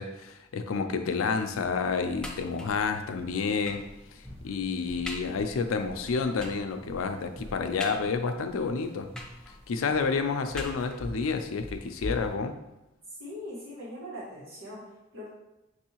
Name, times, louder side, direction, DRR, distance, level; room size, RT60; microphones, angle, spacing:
voice 1, 0.0-3.8 4.1-9.1 9.7-12.6, left 5 dB, 85° left, 7 dB, 0.4 m, -29 dB
sound 1, 1.4-12.4, left 1 dB, 15° right, 0.9 m, -45 dB
sound 2, 2.2-2.9 3.7-4.0 4.5-4.6 5.1-5.4 6.4-6.7 7.8-8.4 9.2-9.8 10.6-11.2 12.1-12.2 12.5-12.6, left 1 dB, 5° left, 0.4 m, -43 dB
voice 2, 13.2-15.3, left 1 dB, 75° right, -8 dB, 1.6 m, -41 dB
6.1 x 2.7 x 2.9 m, 0.95 s
head